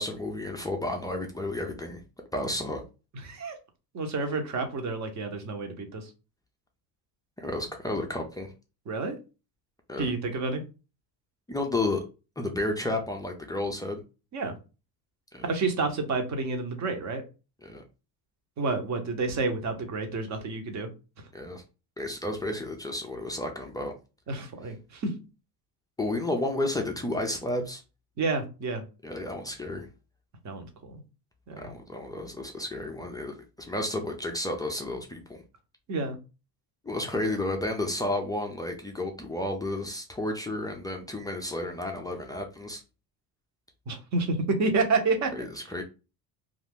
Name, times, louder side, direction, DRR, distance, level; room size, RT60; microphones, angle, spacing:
voice 1, 0.0-2.0 2.3-2.8 7.4-8.5 9.9-10.1 11.5-12.0 12.4-14.0 15.3-15.5 17.6-17.8 21.3-21.6 22.0-23.9 26.0-27.8 29.0-29.9 31.6-35.4 36.8-42.8 45.3-45.8, left 1 dB, 10° left, 2 dB, 0.3 m, -32 dB
voice 2, 3.2-3.6 3.9-6.1 8.9-9.2 10.0-10.6 14.3-14.5 15.4-17.2 18.6-20.9 24.3-25.1 28.2-28.8 30.4-31.0 31.5-31.7 35.9-36.2 43.9-45.3, right 3 dB, 40° right, 5 dB, 0.8 m, -29 dB
2.5 x 2.4 x 3.4 m, 0.31 s
cardioid pair, 125°, 43 cm